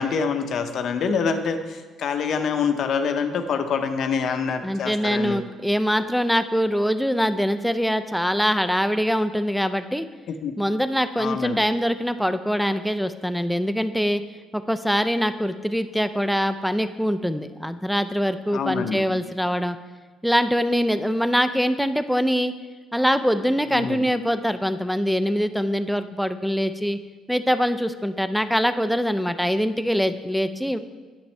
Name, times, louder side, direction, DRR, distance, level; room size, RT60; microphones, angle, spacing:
voice 1, 0.0-5.4 10.3-10.6 11.2-11.6 18.5-19.0 23.7-24.0, left 6 dB, 60° left, 7 dB, 0.6 m, -26 dB
voice 2, 4.6-10.1 10.6-14.2 14.5-19.8 20.2-22.5 22.9-27.0 27.3-30.8, equal, ahead, 10 dB, 0.4 m, -23 dB
9.6 x 5.9 x 3.2 m, 1.3 s
cardioid pair, 100°, 0 cm